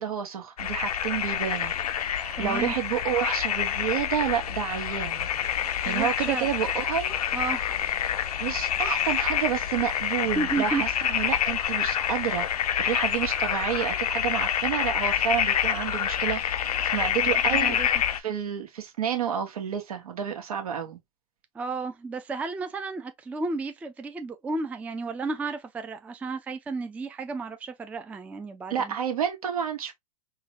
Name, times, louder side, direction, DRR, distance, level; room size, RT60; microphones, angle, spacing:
voice 1, 0.0-5.3 5.8-7.2 8.4-17.8 18.2-21.0 28.7-29.9, right 9 dB, 75° right, 1.2 m, -30 dB
sound 1, 0.6-18.2, left 9 dB, 90° left, 0.5 m, -27 dB
voice 2, 2.4-2.7 5.8-6.5 7.3-7.6 10.4-10.8 17.2-17.3 17.6-17.9 21.5-29.0, right 3 dB, 10° right, 0.3 m, -32 dB
3.9 x 2.2 x 2.8 m
hypercardioid pair, 115°, 19 cm